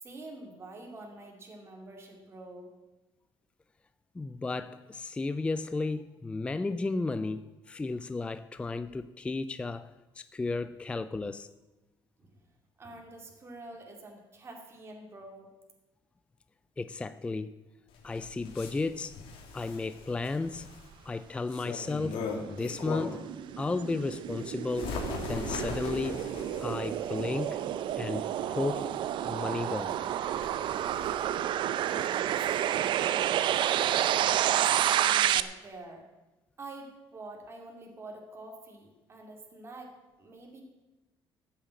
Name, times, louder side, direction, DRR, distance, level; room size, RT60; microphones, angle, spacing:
voice 1, 0.0-2.7 12.2-12.3 12.8-15.5 31.8-33.5 34.1-36.0 36.6-39.9 40.2-40.6, right 2 dB, 25° right, 2.5 m, -46 dB
voice 2, 4.2-9.9 10.2-11.5 16.8-17.5 18.0-19.2 19.5-20.7 21.1-23.3 23.6-25.0 25.3-26.2 26.6-27.6 28.0-28.9 29.3-30.0, left 3 dB, 10° left, 0.4 m, -33 dB
Bird, 17.9-23.3 23.8-31.4, left 4 dB, 65° left, 2.6 m, -41 dB
sound 1, 22.2-35.4, right 11 dB, 55° right, 0.5 m, -30 dB
14.0 x 7.3 x 8.3 m
cardioid pair, 150°, 10 cm